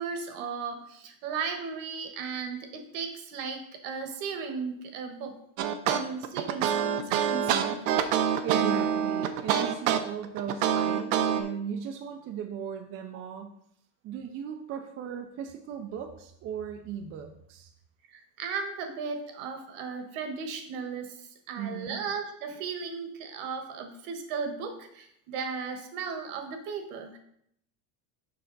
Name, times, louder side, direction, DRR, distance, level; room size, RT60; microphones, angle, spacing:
voice 1, 0.0-5.4 5.9-7.8 13.1-13.2 18.1-27.2, right 5 dB, 65° right, 6 dB, 1.4 m, -36 dB
sound 1, 5.6-11.4, right 9 dB, 90° right, 0.8 m, -26 dB
voice 2, 8.4-13.5 14.0-17.7 21.5-22.0, right 8 dB, 35° right, 5 dB, 0.5 m, -37 dB
6.8 x 5.6 x 3.9 m, 0.72 s
cardioid pair, 150°, 40 cm